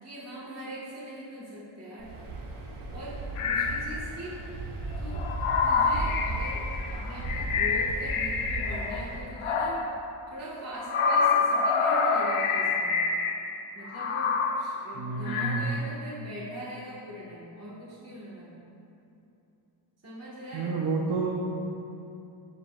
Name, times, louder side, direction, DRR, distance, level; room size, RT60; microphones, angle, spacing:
voice 1, 0.0-2.1 2.9-4.4 5.0-5.2 5.6-9.8 10.3-13.0 13.7-18.6 20.0-20.8, equal, 30° right, -8 dB, 1.6 m, -41 dB
Waves surf, 2.0-9.3, right 2 dB, 75° right, 1.1 m, -36 dB
sound 1, 3.4-3.8 4.9-9.1 9.4-10.0 10.8-13.6 13.9-14.7 15.3-15.7, left 5 dB, 85° left, 0.7 m, -27 dB
voice 2, 14.9-15.6 20.5-21.3, right 4 dB, 55° right, -3 dB, 0.9 m, -29 dB
13.0 x 4.6 x 2.5 m, 2.8 s
cardioid pair, 80°, 49 cm